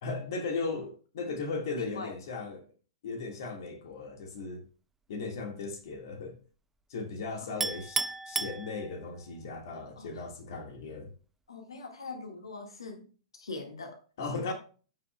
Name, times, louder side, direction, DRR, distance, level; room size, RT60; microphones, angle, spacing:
voice 1, 0.0-2.7 3.0-4.6 5.1-6.4 6.9-11.1 14.2-14.5, left 3 dB, 50° left, 1.7 m, -37 dB
voice 2, 1.8-2.1 7.4-7.5 10.0-10.2 11.5-13.1 13.3-14.0 14.3-14.5, left 3 dB, 65° left, 1.6 m, -42 dB
Chink clink, 7.6-9.3, right 3 dB, 10° right, 0.3 m, -33 dB
15.0 x 5.6 x 2.2 m
figure-of-eight pair, 110°, 3 cm